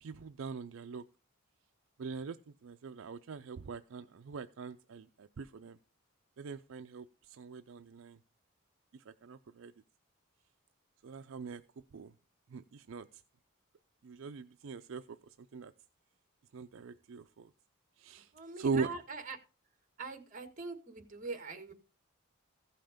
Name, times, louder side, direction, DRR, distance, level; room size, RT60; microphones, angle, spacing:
voice 1, 0.0-1.0 2.0-2.4 2.6-5.8 6.4-8.2 8.9-9.7 11.0-11.6 11.9-12.1 12.5-13.1 14.0-15.0 15.5-15.7 16.5-17.5 18.0-18.3 18.6-18.9, right 5 dB, 70° right, 10 dB, 0.4 m, -41 dB
voice 2, 18.3-19.4 20.0-21.7, right 4 dB, 40° right, 7 dB, 1.6 m, -43 dB
15.0 x 5.7 x 5.1 m, 0.35 s
head